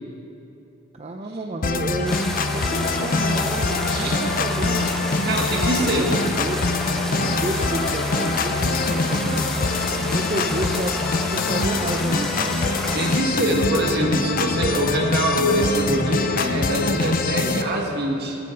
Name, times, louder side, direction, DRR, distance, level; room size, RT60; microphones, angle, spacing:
voice 1, 0.9-4.9 5.8-6.8 7.1-9.7 10.1-12.5, right 1 dB, 35° right, 2 dB, 0.6 m, -31 dB
sound 1, 1.6-17.6, left 3 dB, 45° left, 0.6 m, -24 dB
sound 2, 2.1-13.2, equal, ahead, 0.9 m, -31 dB
voice 2, 3.9-4.2 5.3-6.2 12.9-18.4, right 1 dB, 55° right, 0 dB, 1.8 m, -24 dB
20.0 x 9.4 x 3.9 m, 2.8 s
head